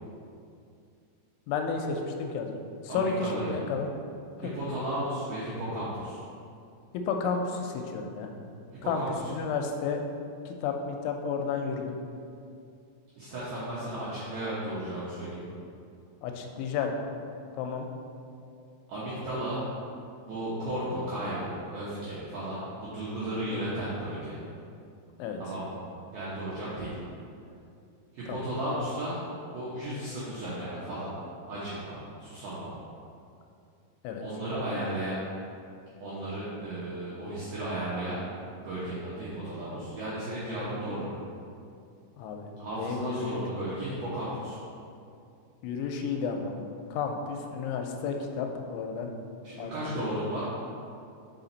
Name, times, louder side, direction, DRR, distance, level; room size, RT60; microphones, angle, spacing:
voice 1, 1.5-2.6 2.8-3.9 4.4-4.5 6.9-8.3 8.9-9.0 9.3-10.0 10.5-11.9 16.2-16.9 17.6-17.9 25.2-25.4 28.3-28.5 34.0-34.3 42.2-42.5 42.8-43.3 45.6-46.5 46.9-49.1 49.6-50.1, left 5 dB, 90° left, 4 dB, 3.0 m, -32 dB
voice 2, 2.9-3.5 4.4-6.2 8.8-9.3 13.2-15.4 18.9-19.6 20.2-24.4 25.4-25.8 26.1-26.9 28.1-29.2 29.5-31.1 31.5-32.7 34.2-35.2 36.0-38.2 38.6-41.1 42.6-44.6 49.4-50.4, right 1 dB, 80° right, -9 dB, 1.9 m, -34 dB
5.8 x 5.0 x 3.9 m, 2.5 s
omnidirectional pair, 5.3 m